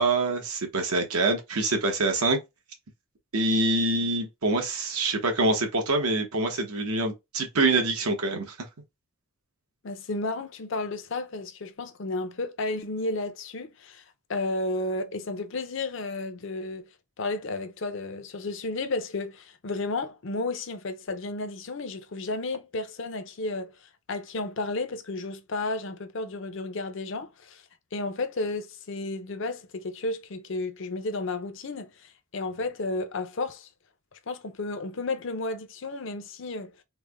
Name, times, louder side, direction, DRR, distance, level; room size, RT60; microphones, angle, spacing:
voice 1, 0.0-2.4 3.3-8.5, right 2 dB, 80° right, 1.0 m, -25 dB
voice 2, 9.8-14.0 14.3-16.8 17.2-23.7 24.1-27.6 27.9-33.7 34.3-36.7, left 2 dB, 55° left, 0.5 m, -32 dB
3.3 x 2.1 x 3.4 m
head